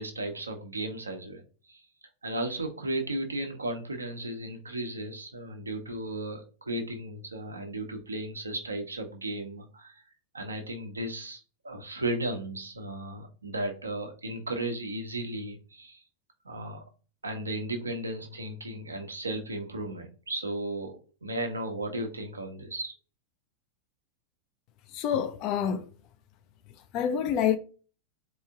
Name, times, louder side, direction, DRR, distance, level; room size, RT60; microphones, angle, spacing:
voice 1, 0.0-1.8 2.2-10.0 10.3-16.0 16.4-16.8 17.2-22.9, right 1 dB, 75° right, 1.0 m, -35 dB
voice 2, 24.9-25.9 26.9-27.6, left 8 dB, 40° left, 0.6 m, -27 dB
4.5 x 3.1 x 3.6 m
figure-of-eight pair, 90°, 0 cm